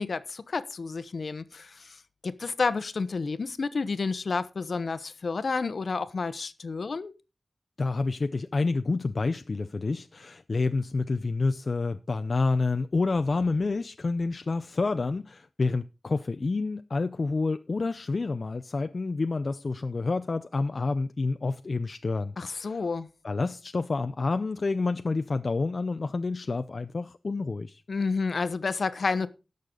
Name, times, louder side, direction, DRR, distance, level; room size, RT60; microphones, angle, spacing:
voice 1, 0.0-7.1 22.4-23.1 27.9-29.3, left 4 dB, 75° left, 0.9 m, -30 dB
voice 2, 7.8-22.3 22.6-22.9 23.2-27.8, left 3 dB, 60° left, 0.5 m, -28 dB
17.5 x 6.7 x 3.8 m
wide cardioid pair, 65°, 0 cm